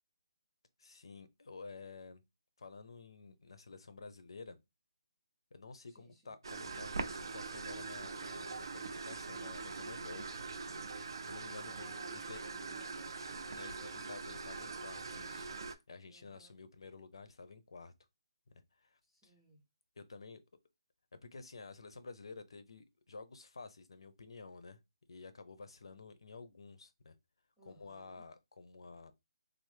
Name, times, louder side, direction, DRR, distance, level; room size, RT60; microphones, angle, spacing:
voice 1, 0.8-2.2 2.6-4.6 5.5-10.3 11.2-12.4 13.5-15.5 15.9-17.9 18.5-19.3 20.0-20.4 21.1-24.8 25.1-27.2 27.6-29.1, left 4 dB, 65° left, 0.5 m, -51 dB
voice 2, 5.9-6.3 11.6-13.5 16.1-16.6 19.1-19.6 27.6-28.2, equal, ahead, 0.5 m, -61 dB
sound 1, 6.4-15.7, right 4 dB, 55° right, 0.5 m, -43 dB
3.1 x 2.0 x 3.2 m
hypercardioid pair, 175°, 3 cm